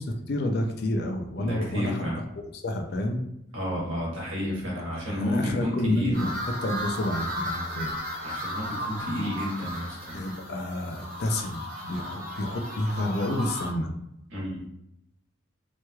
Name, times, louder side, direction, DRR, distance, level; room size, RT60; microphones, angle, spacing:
voice 1, 0.0-1.9 2.4-3.2 5.2-6.3 6.6-7.9 10.1-13.9, left 1 dB, 55° left, 4 dB, 0.4 m, -29 dB
voice 2, 1.4-2.2 3.5-6.3 8.2-10.2 14.3-14.7, equal, 75° right, -4 dB, 1.2 m, -32 dB
sound 1, 6.1-13.7, equal, 45° right, 0.8 m, -35 dB
3.0 x 2.9 x 2.3 m, 0.80 s
head